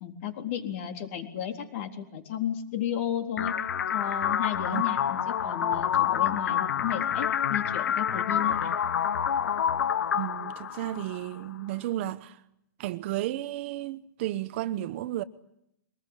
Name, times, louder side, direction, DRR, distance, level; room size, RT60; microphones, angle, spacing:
voice 1, 0.0-3.5 3.9-8.7, left 10 dB, 40° left, 3.8 m, -33 dB
sound 1, 3.4-11.3, left 9 dB, 80° left, 1.2 m, -28 dB
voice 2, 10.1-12.4 12.8-15.2, right 14 dB, 40° right, 1.0 m, -33 dB
23.5 x 20.0 x 9.9 m
hypercardioid pair, 160°, 10 cm